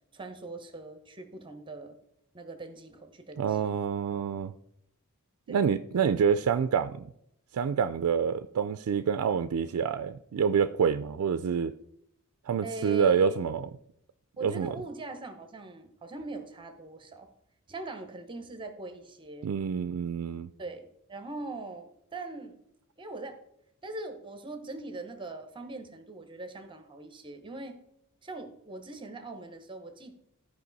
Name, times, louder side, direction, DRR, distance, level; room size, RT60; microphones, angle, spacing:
voice 1, 0.1-2.0 2.3-3.8 5.5-5.7 12.6-13.4 14.4-17.3 17.7-19.5 20.6-22.6 23.0-23.4 23.8-27.8 28.2-30.1, right 2 dB, 25° right, 7 dB, 0.9 m, -41 dB
voice 2, 3.4-4.5 5.5-7.1 7.5-11.7 12.5-13.7 14.4-14.7 19.4-20.5, right 7 dB, 80° right, 10 dB, 0.4 m, -27 dB
13.0 x 5.0 x 4.0 m, 0.75 s
head